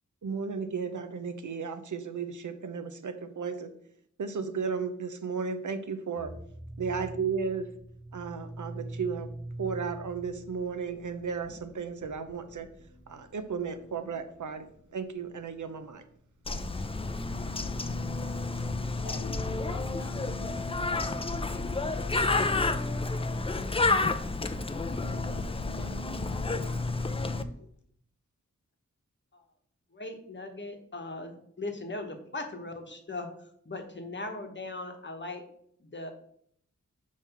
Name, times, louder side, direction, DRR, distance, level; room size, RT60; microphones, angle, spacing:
voice 1, 0.2-3.7 4.2-6.3 6.8-7.7 8.1-9.3 9.6-12.7 13.1-16.0, right 5 dB, 75° right, 9 dB, 0.6 m, -34 dB
sound 1, 6.2-17.4, right 1 dB, ahead, 0.7 m, -45 dB
Bird, 16.4-27.4, left 3 dB, 20° left, 0.4 m, -30 dB
voice 2, 19.0-22.5 24.9-27.7, left 4 dB, 70° left, 4 dB, 0.9 m, -49 dB
voice 3, 29.9-33.3 33.6-35.4 35.8-36.1, left 2 dB, 35° left, 5 dB, 1.0 m, -39 dB
5.4 x 3.2 x 5.6 m, 0.66 s
wide cardioid pair, 85°, 31 cm